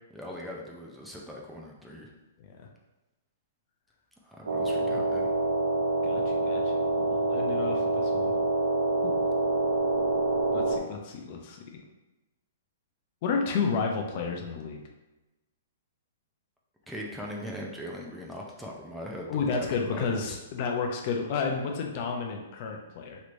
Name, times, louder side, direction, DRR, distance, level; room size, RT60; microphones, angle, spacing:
voice 1, 0.1-2.1 4.2-5.3 16.9-20.4, equal, 5° right, -2 dB, 0.5 m, -40 dB
sound 1, 4.5-10.8, right 2 dB, 80° right, 0.5 m, -26 dB
voice 2, 6.0-6.6 6.9-8.4 9.0-9.2 10.5-11.8 13.2-14.8 19.3-23.2, left 5 dB, 50° left, 2 dB, 0.5 m, -31 dB
3.1 x 3.0 x 2.6 m, 1.0 s
hypercardioid pair, 135°, 0 cm